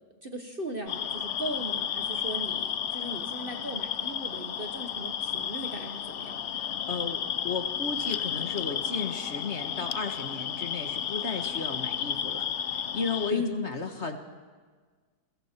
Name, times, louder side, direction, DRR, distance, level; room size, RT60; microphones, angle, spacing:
voice 1, 0.2-6.6 13.3-13.6, equal, 35° right, 4 dB, 1.3 m, -37 dB
sound 1, 0.9-13.3, left 9 dB, 55° left, 0.8 m, -32 dB
voice 2, 6.6-14.2, left 4 dB, 40° left, 5 dB, 1.5 m, -34 dB
30.0 x 22.0 x 4.5 m, 1.5 s
omnidirectional pair, 1.9 m